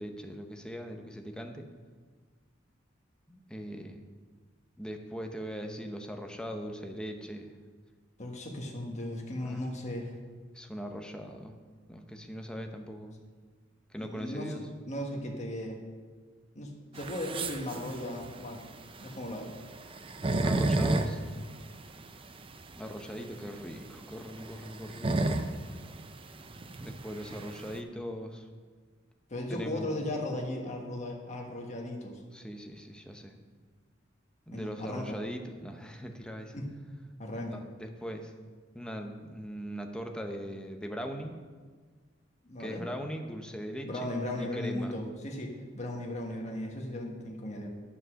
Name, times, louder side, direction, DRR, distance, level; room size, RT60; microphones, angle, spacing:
voice 1, 0.0-1.6 3.3-4.0 4.8-7.5 9.4-9.7 10.5-11.6 11.9-13.2 13.9-14.6 20.4-21.2 22.8-25.4 26.8-28.5 29.5-30.0 32.3-33.4 34.5-36.5 37.5-38.3 38.7-41.3 42.6-44.1 44.4-44.9, equal, 5° left, 4 dB, 0.7 m, -40 dB
voice 2, 8.2-10.2 14.0-15.8 16.5-18.6 19.0-19.5 29.3-32.2 34.5-35.2 36.5-36.6 36.9-37.6 42.4-42.8 43.8-47.7, left 1 dB, 35° left, 1 dB, 1.4 m, -37 dB
sound 1, 16.9-27.8, right 2 dB, 30° right, 0.5 m, -33 dB
9.8 x 5.4 x 6.3 m, 1.5 s
head